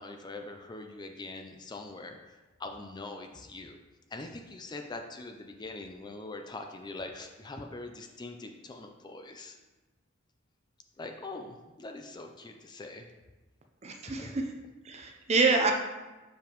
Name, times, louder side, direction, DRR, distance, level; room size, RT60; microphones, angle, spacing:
voice 1, 0.0-3.8 4.1-9.6 11.0-13.1 14.1-14.4, left 2 dB, 20° left, 4 dB, 0.4 m, -43 dB
voice 2, 13.8-14.4 14.8-15.7, right 4 dB, 35° right, 4 dB, 0.6 m, -26 dB
6.8 x 5.2 x 3.0 m, 1.2 s
head